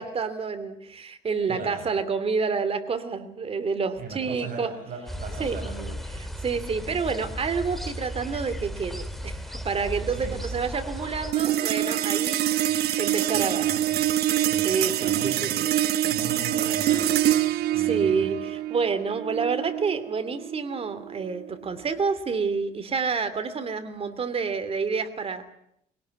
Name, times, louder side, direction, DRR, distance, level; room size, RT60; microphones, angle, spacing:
voice 1, 0.0-4.7 5.4-5.6 6.4-13.7 14.6-15.5 17.7-25.4, right 5 dB, 35° right, 11 dB, 2.6 m, -28 dB
voice 2, 1.5-1.9 4.0-6.0 6.8-7.1 10.0-10.5 12.6-13.0 13.3-14.1 14.4-15.8 16.0-17.5 17.7-18.3, right 4 dB, 55° right, 3 dB, 6.8 m, -39 dB
sound 1, 5.1-11.3, equal, ahead, 2.4 m, -35 dB
sound 2, 11.3-21.9, right 12 dB, 70° right, 1.1 m, -25 dB
22.0 x 18.5 x 9.5 m, 0.74 s
cardioid pair, 110°, 17 cm